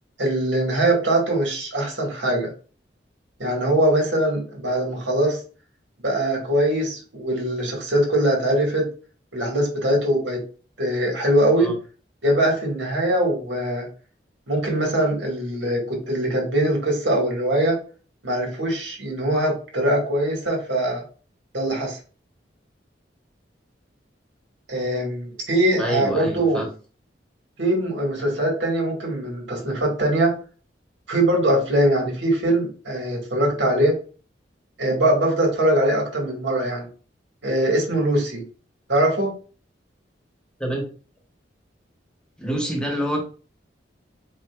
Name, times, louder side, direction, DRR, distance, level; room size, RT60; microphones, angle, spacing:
voice 1, 0.2-2.5 3.4-5.4 6.0-8.9 9.3-10.4 10.8-11.7 12.2-13.9 14.5-17.8 18.2-21.0 21.5-22.0 24.7-26.6 27.6-30.3 31.1-34.0 34.8-36.9 37.4-38.4 38.9-39.3, right 1 dB, 90° right, 0 dB, 2.0 m, -22 dB
voice 2, 25.8-26.7 40.6-40.9 42.4-43.2, equal, 5° left, 0 dB, 1.0 m, -26 dB
7.5 x 2.7 x 2.4 m, 0.38 s
head